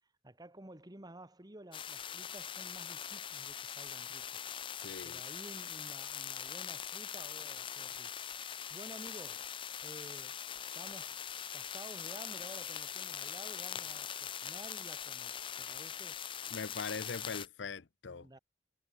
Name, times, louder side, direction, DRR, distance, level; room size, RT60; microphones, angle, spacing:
voice 1, 0.2-4.4 5.0-9.5 9.8-10.4 10.7-11.2 11.5-16.3 18.1-18.4, right 1 dB, 20° right, 2.3 m, -52 dB
sound 1, 1.7-17.5, left 9 dB, 30° left, 0.4 m, -42 dB
voice 2, 4.7-5.2 15.7-15.8 16.5-18.4, left 5 dB, 85° left, 0.7 m, -42 dB
head